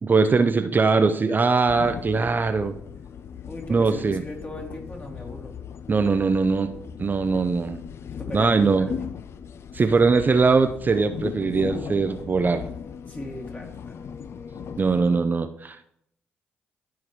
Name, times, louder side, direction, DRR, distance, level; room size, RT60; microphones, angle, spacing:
voice 1, 0.0-2.7 3.7-4.2 5.9-6.7 7.0-7.8 8.3-8.9 9.7-12.7 14.8-15.8, right 4 dB, 35° right, 8 dB, 0.5 m, -21 dB
sound 1, 1.7-15.2, left 7 dB, 55° left, 0.4 m, -38 dB
voice 2, 3.4-5.6 8.1-9.1 9.7-10.0 13.1-14.1, left 1 dB, 30° left, 0 dB, 2.2 m, -38 dB
12.0 x 4.6 x 3.1 m, 0.74 s
hypercardioid pair, 45°, 5 cm